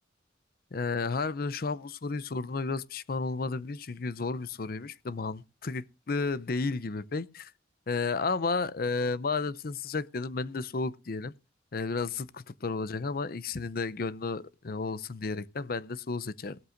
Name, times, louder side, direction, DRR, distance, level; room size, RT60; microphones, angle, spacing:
voice 1, 0.7-7.5 7.9-11.3 11.7-16.6, left 4 dB, 55° left, 0.6 m, -32 dB
17.5 x 13.0 x 2.5 m
head